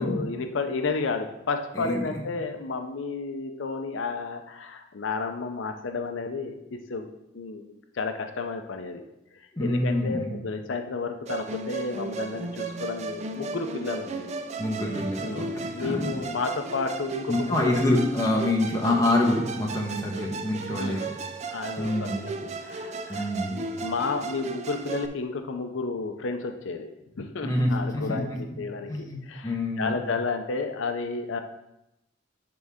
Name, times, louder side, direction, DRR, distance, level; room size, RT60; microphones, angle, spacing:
voice 1, 0.0-7.1 7.3-9.0 9.3-14.4 15.2-17.8 20.8-21.1 21.5-31.4, left 4 dB, 85° left, 6 dB, 0.5 m, -32 dB
voice 2, 1.7-2.1 9.5-10.3 14.6-16.1 17.3-21.1 21.8-22.2 23.1-23.6 27.4-28.2 28.9-29.2 29.4-29.9, left 1 dB, 20° left, -2 dB, 1.2 m, -26 dB
Musical instrument, 11.3-25.1, right 3 dB, 35° right, 0.4 m, -35 dB
10.5 x 3.8 x 3.6 m, 0.87 s
head